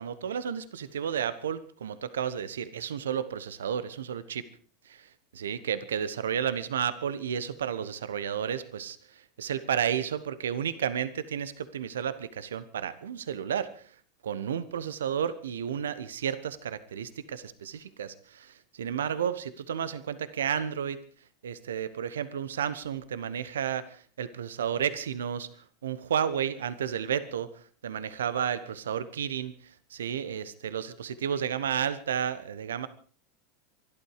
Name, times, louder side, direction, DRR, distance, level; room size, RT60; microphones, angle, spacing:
voice 1, 0.0-4.4 4.9-13.8 14.2-21.0 21.4-25.5 25.8-29.5 29.9-32.9, right 8 dB, 75° right, 16 dB, 1.1 m, -32 dB
24.5 x 12.0 x 4.9 m, 0.43 s
hypercardioid pair, 85°, 0 cm